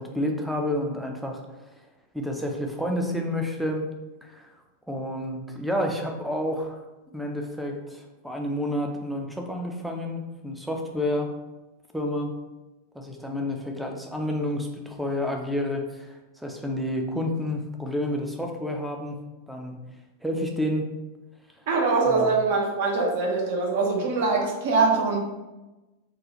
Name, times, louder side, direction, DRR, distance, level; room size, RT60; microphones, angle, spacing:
voice 1, 0.0-1.4 2.1-3.9 4.2-4.5 4.9-6.8 7.1-11.3 11.9-12.3 12.9-19.2 19.5-19.8 20.2-20.9 22.1-22.3, left 1 dB, ahead, 2 dB, 0.5 m, -29 dB
voice 2, 21.7-25.2, right 4 dB, 50° right, 0 dB, 0.7 m, -23 dB
3.7 x 2.4 x 2.9 m, 1.1 s
figure-of-eight pair, 90°, 0 cm